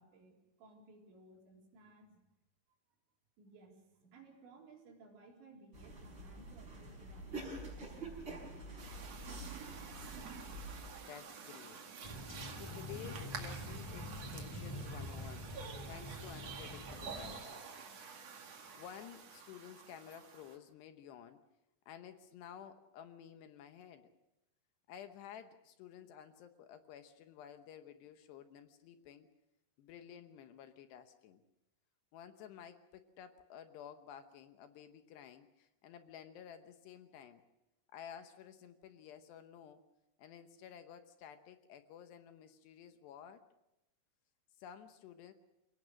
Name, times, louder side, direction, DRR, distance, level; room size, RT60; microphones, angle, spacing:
voice 1, 0.0-2.2 3.4-8.5, right 3 dB, 70° right, 0 dB, 6.1 m, -60 dB
sound 1, 5.7-10.9, right 2 dB, 25° right, 5.9 m, -47 dB
sound 2, 8.8-20.6, right 6 dB, 45° right, 2.4 m, -49 dB
voice 2, 11.1-11.8 12.5-17.7 18.8-21.4 21.9-24.1 24.9-29.3 29.8-31.4 32.1-37.4 37.9-39.8 40.2-43.5 44.6-45.3, left 9 dB, 75° left, 8 dB, 2.9 m, -53 dB
sound 3, 12.0-17.4, left 1 dB, 20° left, 0.9 m, -46 dB
28.5 x 18.0 x 6.4 m, 0.93 s
omnidirectional pair, 5.4 m